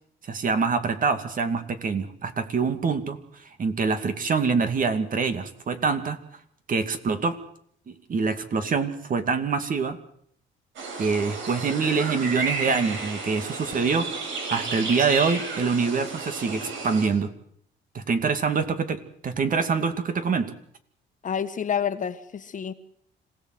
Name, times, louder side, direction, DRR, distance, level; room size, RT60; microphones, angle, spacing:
voice 1, 0.2-3.2 3.6-6.2 6.7-7.4 8.1-10.0 11.0-14.2 14.5-17.3 17.9-20.5, right 5 dB, 45° right, 9 dB, 2.5 m, -25 dB
sound 1, 10.8-17.1, right 3 dB, 75° right, 8.0 m, -33 dB
voice 2, 21.2-22.7, left 7 dB, 40° left, 10 dB, 1.6 m, -28 dB
26.5 x 17.5 x 7.9 m, 0.66 s
cardioid pair, 115°, 20 cm